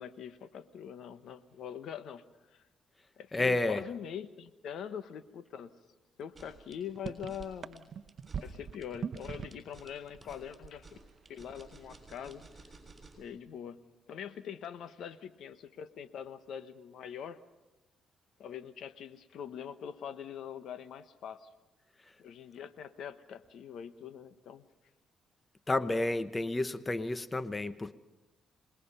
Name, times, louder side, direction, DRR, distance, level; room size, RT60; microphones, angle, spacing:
voice 1, 0.0-2.2 2.5-2.7 3.2-5.7 6.2-7.9 8.4-11.0 11.3-12.4 13.2-13.8 14.1-17.4 18.4-21.5 22.2-24.6, left 8 dB, 75° left, 1.1 m, -43 dB
voice 2, 3.3-3.8 25.7-27.9, left 2 dB, 20° left, 0.8 m, -30 dB
sound 1, 6.2-13.3, right 3 dB, 20° right, 6.6 m, -55 dB
sound 2, 6.6-6.7 6.9-9.8 10.0-11.1 11.4-11.7, right 7 dB, 55° right, 0.9 m, -41 dB
27.0 x 21.0 x 5.6 m
cardioid pair, 90°, 0 cm